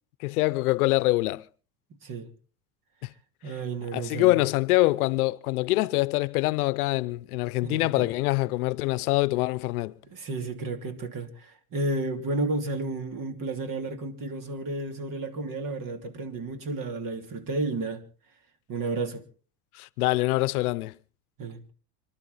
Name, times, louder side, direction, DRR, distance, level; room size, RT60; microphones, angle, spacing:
voice 1, 0.2-1.5 3.0-3.1 3.9-9.9 19.7-20.9, left 20 dB, 80° left, 0.8 m, -25 dB
voice 2, 3.4-4.4 7.6-8.1 10.1-18.0 18.7-19.2 21.4-21.6, right 2 dB, 50° right, 3.0 m, -32 dB
26.5 x 12.0 x 4.0 m
hypercardioid pair, 80°, 43 cm